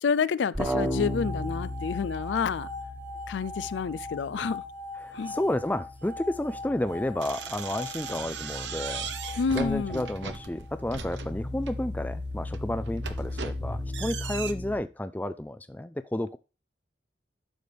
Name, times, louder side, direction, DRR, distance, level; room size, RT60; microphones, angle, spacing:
voice 1, 0.0-2.7 3.3-4.6 5.1-5.4 9.4-10.1, left 5 dB, 75° left, 0.4 m, -29 dB
sound 1, 0.5-4.9 5.2-14.8, left 1 dB, 10° right, 1.2 m, -36 dB
sound 2, 0.9-11.0, left 2 dB, 40° right, 1.4 m, -41 dB
voice 2, 5.0-16.4, left 1 dB, 10° left, 0.3 m, -32 dB
sound 3, 7.2-11.8 12.3-14.5, right 6 dB, 75° right, 1.0 m, -38 dB
11.5 x 6.8 x 3.4 m
head